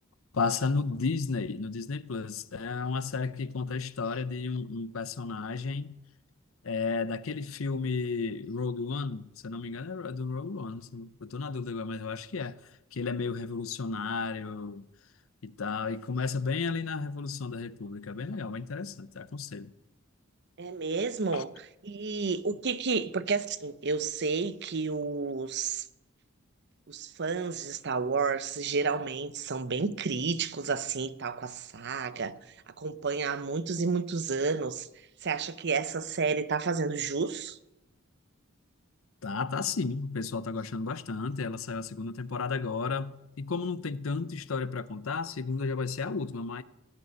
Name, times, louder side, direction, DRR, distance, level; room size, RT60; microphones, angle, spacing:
voice 1, 0.3-5.9 6.6-12.6 12.9-14.8 15.4-19.7 21.3-21.4 39.2-46.6, left 4 dB, 75° left, 0.7 m, -33 dB
voice 2, 20.6-25.9 26.9-32.4 32.7-34.9 35.2-37.6, right 4 dB, 55° right, 0.8 m, -31 dB
17.5 x 6.8 x 9.6 m
head